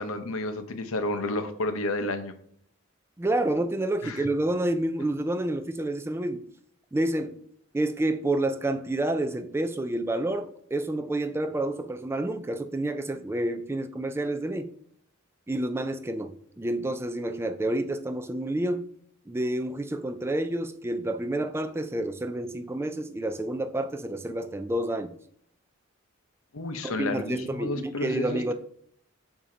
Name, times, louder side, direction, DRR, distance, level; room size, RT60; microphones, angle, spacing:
voice 1, 0.0-2.3 4.0-4.2 26.5-28.5, left 2 dB, 85° left, 0.7 m, -31 dB
voice 2, 3.2-6.4 6.9-7.4 7.7-14.7 15.5-18.9 19.3-25.2 26.8-28.5, right 1 dB, 10° right, 0.3 m, -29 dB
7.2 x 2.8 x 4.9 m
head